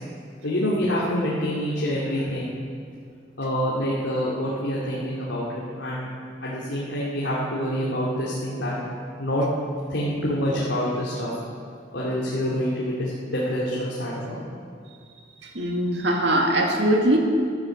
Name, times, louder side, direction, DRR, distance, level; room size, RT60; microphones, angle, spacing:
voice 1, 0.4-2.5 3.4-6.1 6.4-8.7 9.2-9.4 9.9-11.3 11.9-14.4, equal, 70° left, -7 dB, 2.7 m, -26 dB
voice 2, 15.4-17.2, right 1 dB, 65° right, 1 dB, 2.2 m, -21 dB
12.5 x 12.5 x 7.8 m, 2.2 s
head